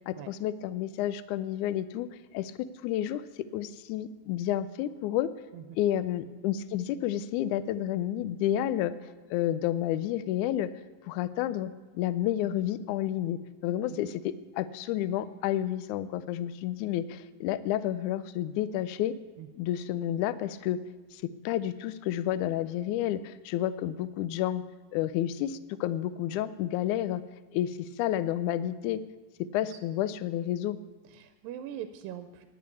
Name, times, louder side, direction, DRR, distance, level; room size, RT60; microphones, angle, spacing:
voice 1, 0.1-2.1 2.3-3.2 3.5-5.3 5.8-10.7 11.1-19.1 19.6-20.8 21.1-24.6 24.9-27.2 27.5-29.0 29.4-30.8, left 12 dB, 90° left, 13 dB, 1.8 m, -30 dB
voice 2, 31.1-32.5, right 10 dB, 85° right, 8 dB, 2.3 m, -42 dB
10.5 x 9.6 x 8.3 m, 1.3 s
omnidirectional pair, 4.1 m